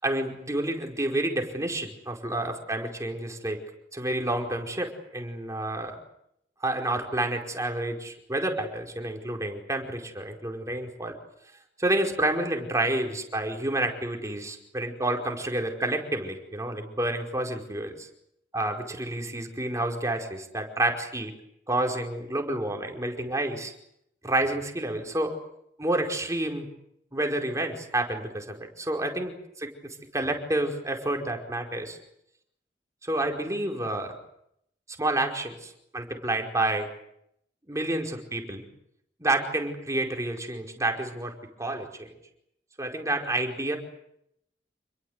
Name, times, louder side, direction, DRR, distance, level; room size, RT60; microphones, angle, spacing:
voice 1, 0.0-3.6 3.9-6.0 6.6-11.1 11.8-18.1 18.5-21.3 21.7-23.7 24.2-25.3 25.8-26.7 27.1-29.7 30.1-32.0 33.0-34.2 35.0-36.9 37.7-38.6 39.2-42.1 42.8-43.8, right 1 dB, 20° right, 2 dB, 4.9 m, -29 dB
28.5 x 22.0 x 8.2 m, 0.76 s
head